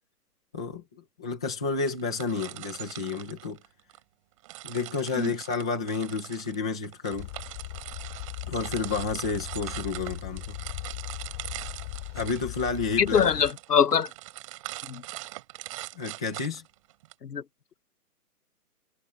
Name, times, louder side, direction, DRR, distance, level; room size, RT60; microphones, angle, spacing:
voice 1, 0.5-3.6 4.6-7.3 8.5-10.6 12.1-13.3 15.9-16.6, left 4 dB, 5° left, 0.8 m, -31 dB
sound 1, 1.8-4.0 4.4-17.1, right 18 dB, 20° right, 5.8 m, -42 dB
sound 2, 7.1-13.5, left 24 dB, 20° left, 7.3 m, -39 dB
voice 2, 13.0-14.1 14.9-15.0 17.2-17.4, left 7 dB, 85° left, 1.3 m, -23 dB
hypercardioid pair, 170°, 46 cm